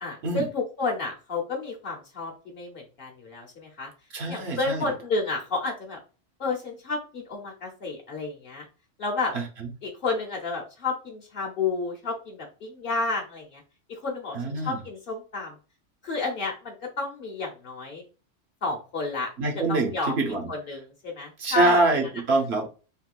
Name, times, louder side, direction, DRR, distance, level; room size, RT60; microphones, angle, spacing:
voice 1, 0.0-3.9 4.3-6.0 6.4-8.7 9.0-9.3 9.8-13.6 13.9-15.6 16.0-18.0 18.6-19.3 19.7-20.2 20.5-21.8, left 3 dB, 50° left, 1 dB, 0.9 m, -31 dB
voice 2, 4.1-4.8 9.3-9.4 14.3-14.8 19.4-20.5 21.4-22.7, right 2 dB, 60° right, 2 dB, 1.0 m, -24 dB
3.6 x 2.3 x 2.4 m, 0.33 s
omnidirectional pair, 1.3 m